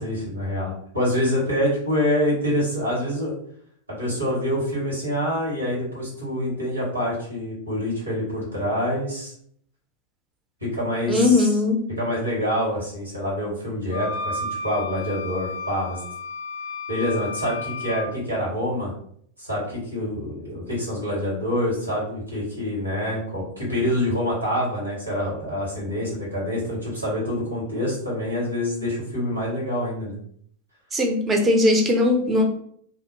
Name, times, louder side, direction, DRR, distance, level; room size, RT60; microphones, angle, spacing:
voice 1, 0.0-3.3 3.9-9.3 10.6-11.5 12.0-16.0 16.9-18.9 19.4-30.2, left 1 dB, 85° right, -5 dB, 1.5 m, -26 dB
voice 2, 11.1-11.9 30.9-32.4, left 2 dB, 15° right, 2 dB, 0.6 m, -19 dB
sound 1, 13.9-18.1, left 3 dB, 70° left, 0.4 m, -32 dB
2.7 x 2.3 x 2.7 m, 0.64 s
figure-of-eight pair, 90°, 0 cm